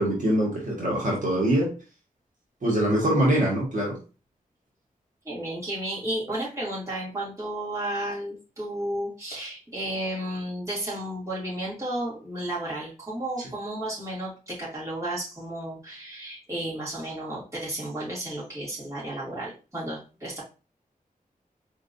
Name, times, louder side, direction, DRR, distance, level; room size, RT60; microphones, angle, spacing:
voice 1, 0.0-1.7 2.6-4.0, right 1 dB, 60° right, -4 dB, 1.6 m, -23 dB
voice 2, 5.2-20.4, right 1 dB, 20° right, -7 dB, 2.6 m, -33 dB
4.6 x 3.7 x 2.6 m, 0.34 s
wide cardioid pair, 105°, 15 cm